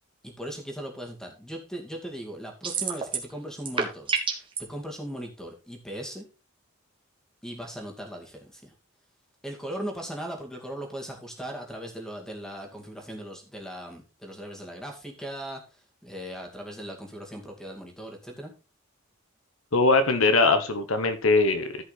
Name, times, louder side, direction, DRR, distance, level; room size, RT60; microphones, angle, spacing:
voice 1, 0.2-6.2 7.4-8.7 9.4-15.6 16.0-18.5, equal, 5° left, 2 dB, 2.3 m, -38 dB
sound 1, 2.6-3.3 3.6-4.6, right 5 dB, 25° right, 1.9 m, -27 dB
voice 2, 19.7-21.8, left 3 dB, 75° left, 9 dB, 1.1 m, -21 dB
13.5 x 5.7 x 4.1 m, 0.31 s
head